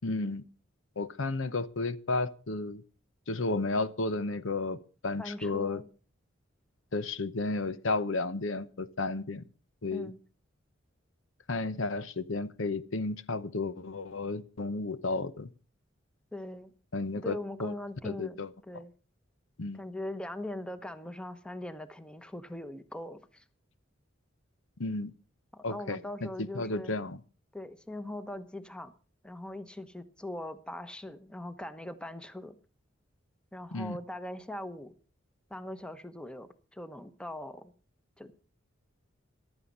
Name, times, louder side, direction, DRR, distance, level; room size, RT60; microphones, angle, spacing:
voice 1, 0.0-0.4 1.0-2.8 3.3-5.8 6.9-9.4 9.8-10.1 11.5-15.5 16.9-17.7 18.0-18.5 19.6-19.8 24.8-25.1 25.6-27.2 33.7-34.0, left 3 dB, 70° left, 0.8 m, -33 dB
voice 2, 5.2-5.8 9.9-10.2 16.3-16.7 17.2-18.9 19.7-23.4 25.5-26.9 27.5-28.9 29.2-32.5 33.5-34.9 35.5-37.7 38.2-38.3, left 1 dB, 5° left, 1.0 m, -41 dB
14.5 x 11.5 x 5.4 m
head